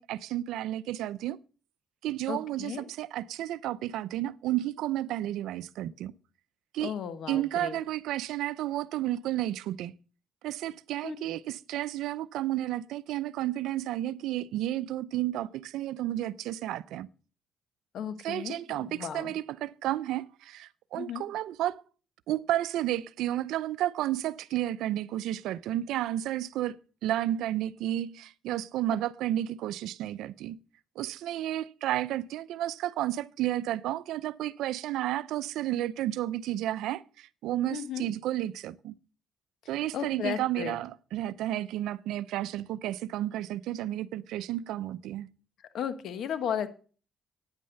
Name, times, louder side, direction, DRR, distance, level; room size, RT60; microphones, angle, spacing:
voice 1, 0.0-1.4 2.0-6.1 6.7-6.9 7.3-9.9 10.4-17.1 18.2-21.8 22.3-30.6 31.0-38.9 39.7-45.3, right 13 dB, 90° right, 0.5 m, -32 dB
voice 2, 2.3-2.8 6.8-7.8 11.0-11.2 17.9-19.3 21.0-21.2 37.7-38.1 39.9-40.8 45.7-46.7, left 8 dB, 70° left, 1.2 m, -35 dB
9.7 x 8.9 x 6.5 m
cardioid pair, 90°, 0 cm